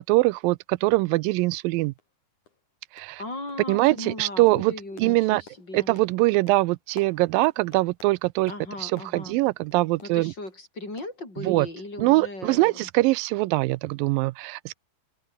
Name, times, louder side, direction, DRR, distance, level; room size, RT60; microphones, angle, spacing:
voice 1, 0.0-1.9 2.9-3.2 3.7-4.7 5.0-5.4 5.7-8.5 8.8-10.3 11.4-11.7 12.0-14.8, right 21 dB, 90° right, 2.3 m, -23 dB
sound 1, 1.5-1.6 2.0-2.1 2.4-2.7 3.0-3.2 3.5-10.6 11.0-11.8 12.0-12.1 12.5-12.6, left 5 dB, 60° left, 5.9 m, -55 dB
voice 2, 3.2-5.9 8.5-9.4 10.0-12.9, left 2 dB, 30° left, 7.9 m, -38 dB
open air
omnidirectional pair, 4.0 m